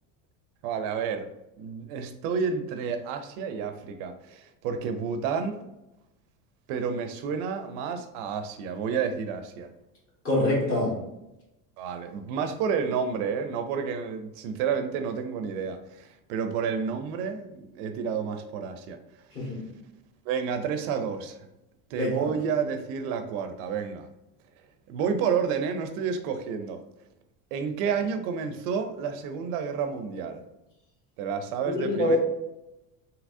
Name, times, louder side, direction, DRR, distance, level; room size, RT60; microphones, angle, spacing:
voice 1, 0.6-1.3 1.6-5.7 6.7-9.7 11.8-19.0 20.3-21.4 21.9-24.1 24.9-26.8 27.5-30.4 31.2-32.2, right 6 dB, 70° right, 7 dB, 0.6 m, -30 dB
voice 2, 10.2-11.0 19.3-19.7 21.9-22.3 31.7-32.2, left 1 dB, 30° left, -4 dB, 1.5 m, -25 dB
3.3 x 2.9 x 2.5 m, 0.92 s
cardioid pair, 130°, 43 cm